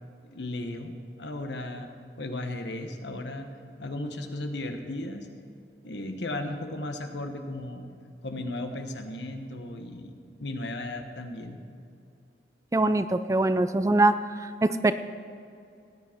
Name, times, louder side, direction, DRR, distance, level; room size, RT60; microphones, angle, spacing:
voice 1, 0.2-1.9 2.2-3.5 3.8-5.3 5.8-7.9 8.2-10.1 10.4-11.7, left 1 dB, 80° left, 5 dB, 1.2 m, -35 dB
voice 2, 12.7-14.1 14.4-14.9, right 2 dB, 15° right, 11 dB, 0.3 m, -23 dB
17.5 x 9.9 x 4.5 m, 2.5 s
head